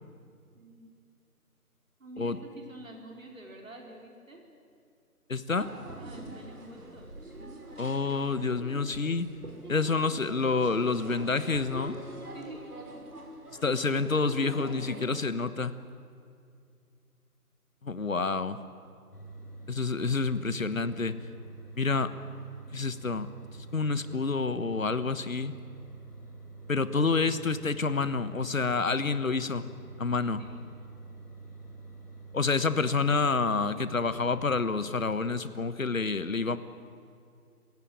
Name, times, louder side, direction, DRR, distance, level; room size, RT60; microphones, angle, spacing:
voice 1, 0.5-0.9 2.0-4.4 5.7-7.1 7.4-7.7 12.3-12.7 30.4-30.6, right 1 dB, 60° right, 1 dB, 5.0 m, -48 dB
voice 2, 5.3-5.7 7.8-9.3 9.7-12.0 13.6-15.7 17.8-18.6 19.7-21.2 21.8-22.1 22.7-23.3 23.7-25.5 26.7-29.7 30.0-30.4 32.3-36.6, left 4 dB, 60° left, 13 dB, 1.3 m, -28 dB
sound 1, 5.5-15.1, right 2 dB, 75° right, 5.8 m, -44 dB
sound 2, 19.1-34.5, right 3 dB, 80° left, 4.3 m, -47 dB
27.0 x 17.0 x 9.0 m, 2.4 s
figure-of-eight pair, 165°, 46 cm